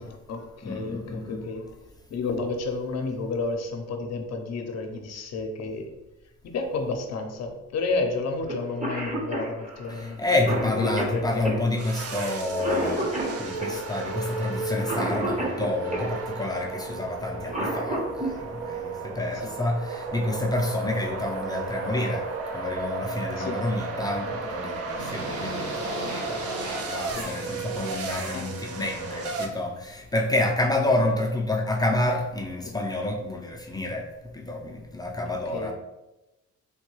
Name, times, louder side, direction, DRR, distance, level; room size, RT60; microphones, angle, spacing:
voice 1, 0.0-1.8 2.1-5.9 6.4-10.2 10.5-11.5 19.3-19.5 23.4-23.6 27.1-27.3 28.3-28.5 32.6-32.7 35.5-35.7, left 3 dB, 60° left, 4 dB, 0.6 m, -31 dB
voice 2, 0.6-1.4 9.9-13.1 13.4-22.3 22.5-34.1 34.3-35.7, left 2 dB, 15° left, 0 dB, 0.4 m, -29 dB
Cough, 8.5-8.6 8.8-16.1 17.2-18.3 19.9-20.0 21.1-21.3 21.8-21.9 22.3-22.8, right 1 dB, 25° right, 0.8 m, -31 dB
sound 1, 11.8-29.5, right 3 dB, 55° right, 0.5 m, -34 dB
sound 2, 25.0-29.0, right 1 dB, 75° right, 1.1 m, -37 dB
3.4 x 2.2 x 3.0 m, 0.97 s
cardioid pair, 90°, 30 cm